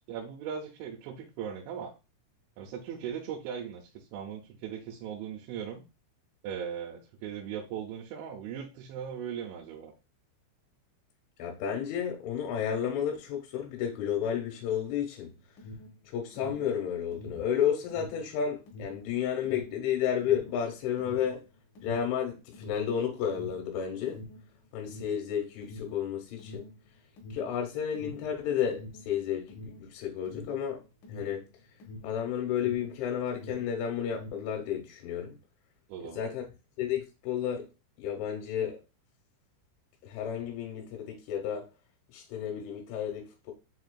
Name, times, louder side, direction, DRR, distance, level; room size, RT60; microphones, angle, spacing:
voice 1, 0.1-1.9 2.6-5.8 6.4-9.9 35.9-36.2, right 8 dB, 90° right, 3.0 m, -38 dB
voice 2, 11.4-15.3 16.1-21.4 21.8-24.2 24.7-26.6 27.3-30.8 31.1-31.4 32.0-35.4 36.1-36.4 36.8-37.7 38.0-38.8 40.0-41.6 42.1-43.5, left 8 dB, 90° left, 3.2 m, -32 dB
Alarm, 15.4-33.0 33.3-34.6, left 1 dB, 70° left, 2.0 m, -46 dB
7.1 x 2.5 x 2.2 m
omnidirectional pair, 5.3 m